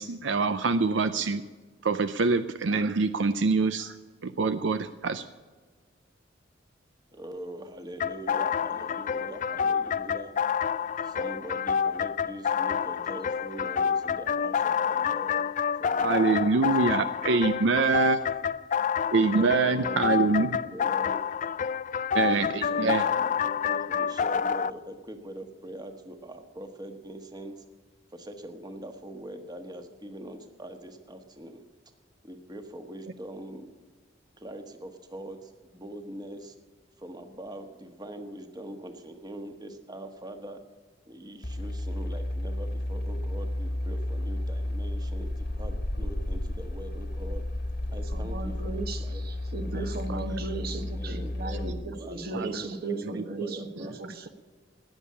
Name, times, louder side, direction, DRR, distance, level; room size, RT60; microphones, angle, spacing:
voice 1, 0.0-1.4 1.8-4.0 4.2-5.2 16.0-18.3 19.1-20.6 22.1-23.0 50.1-50.2 51.5-51.6 52.3-52.5 53.1-53.2, right 4 dB, 75° right, 11 dB, 0.6 m, -25 dB
voice 2, 7.1-10.3 11.0-15.5 15.8-17.5 19.1-21.2 22.1-27.6 28.1-31.6 32.2-33.7 34.4-36.5 37.0-40.6 41.1-47.5 47.9-49.2 49.6-51.6 52.0-54.0, right 1 dB, 20° right, 6 dB, 1.4 m, -43 dB
sound 1, 8.0-24.7, left 7 dB, 45° left, 0.4 m, -28 dB
sound 2, 41.4-51.7, left 1 dB, 60° left, 1.6 m, -32 dB
voice 3, 48.1-54.3, right 3 dB, 55° right, 7 dB, 1.5 m, -36 dB
19.5 x 7.2 x 8.5 m, 1.4 s
head